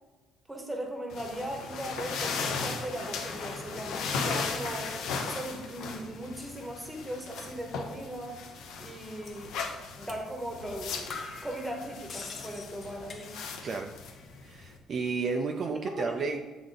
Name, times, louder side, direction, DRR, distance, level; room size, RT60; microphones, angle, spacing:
voice 1, 0.5-4.9 5.2-8.4 8.8-9.5 10.0-11.1 11.4-13.3 15.8-16.4, right 1 dB, 10° right, 2 dB, 1.0 m, -38 dB
sound 1, 1.1-14.8, left 4 dB, 75° left, 0.8 m, -37 dB
sound 2, 9.2-9.5 10.1-10.3 10.6-10.7 11.1-13.7 14.0-14.6, left 4 dB, 40° left, 0.7 m, -44 dB
voice 2, 13.6-13.9 14.4-16.4, right 4 dB, 40° right, 2 dB, 0.4 m, -32 dB
7.9 x 3.8 x 3.9 m, 1.3 s
cardioid pair, 155°, 0 cm